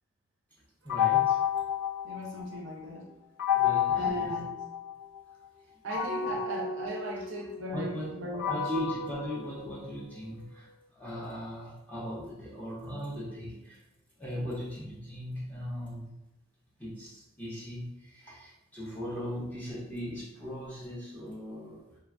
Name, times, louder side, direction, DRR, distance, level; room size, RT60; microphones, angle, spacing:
voice 1, 0.8-1.4 3.6-4.4 6.3-6.4 7.1-7.2 7.7-13.8 14.2-16.1 16.8-21.8, equal, 10° left, -7 dB, 0.7 m, -39 dB
sound 1, 0.9-2.7 3.4-5.2 5.9-10.2, left 9 dB, 70° left, 0.6 m, -30 dB
voice 2, 2.0-3.0 3.9-4.5 5.8-8.6, right 1 dB, 55° right, -1 dB, 0.5 m, -37 dB
3.1 x 2.2 x 2.4 m, 0.93 s
head